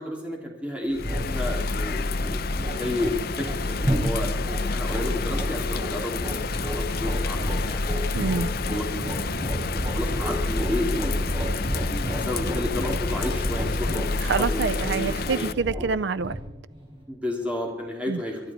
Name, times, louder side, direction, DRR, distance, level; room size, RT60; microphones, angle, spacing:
voice 1, 0.0-2.3 2.7-6.2 6.6-7.8 8.7-9.1 9.9-15.5 17.1-18.4, left 1 dB, 5° right, 3.1 m, -32 dB
Bird vocalization bird call bird song / Rain, 0.9-15.5, left 3 dB, 55° left, 0.6 m, -29 dB
sound 1, 1.0-17.4, equal, 30° right, 3.7 m, -32 dB
voice 2, 8.1-8.5 14.2-16.4 18.1-18.2, right 4 dB, 65° right, 0.5 m, -26 dB
23.5 x 11.5 x 4.5 m
head